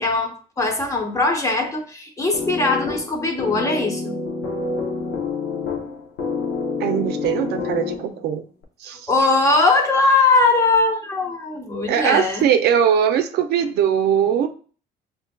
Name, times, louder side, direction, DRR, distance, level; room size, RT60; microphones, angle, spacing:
voice 1, 0.0-4.1 9.1-12.5, left 3 dB, 20° left, 3 dB, 0.8 m, -20 dB
sound 1, 2.3-8.3, left 4 dB, 90° left, 0.8 m, -27 dB
voice 2, 6.8-8.4 8.8-9.1 11.9-14.5, right 8 dB, 70° right, 8 dB, 0.5 m, -20 dB
5.5 x 2.7 x 2.2 m, 0.41 s
cardioid pair, 110°, 17 cm